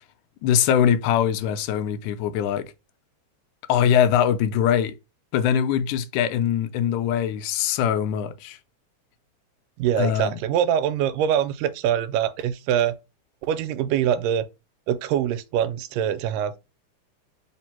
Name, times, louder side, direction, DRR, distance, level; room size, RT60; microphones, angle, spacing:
voice 1, 0.4-2.7 3.7-5.0 5.3-8.6 10.0-10.4, left 9 dB, 80° left, 1.9 m, -22 dB
voice 2, 9.8-12.9 13.4-14.5 14.9-16.5, right 9 dB, 85° right, 2.2 m, -24 dB
5.1 x 2.0 x 4.3 m
omnidirectional pair, 3.7 m